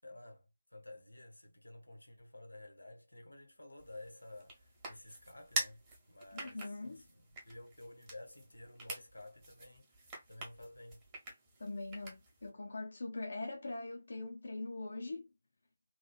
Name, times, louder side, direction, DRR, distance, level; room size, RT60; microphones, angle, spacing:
voice 1, 0.0-11.0, left 1 dB, 75° left, 0.9 m, -53 dB
sound 1, 3.8-12.5, right 2 dB, 20° right, 0.9 m, -46 dB
voice 2, 6.3-7.1 11.6-15.3, left 2 dB, 55° left, 0.4 m, -42 dB
3.0 x 2.3 x 2.3 m
figure-of-eight pair, 150°, 0 cm